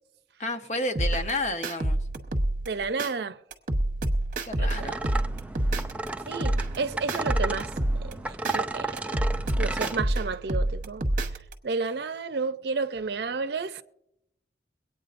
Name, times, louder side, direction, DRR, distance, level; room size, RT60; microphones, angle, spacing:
voice 1, 0.4-2.0 4.4-4.9, left 2 dB, 40° left, 0.8 m, -31 dB
sound 1, 1.0-3.1 3.5-6.1 6.4-8.6 9.0-11.5, right 1 dB, 45° right, 1.0 m, -28 dB
voice 2, 2.6-3.4 4.6-5.0 6.3-9.2 9.6-13.8, right 4 dB, 70° right, 0.6 m, -32 dB
sound 2, 4.8-10.0, right 2 dB, 10° right, 0.3 m, -33 dB
23.0 x 9.0 x 2.5 m
head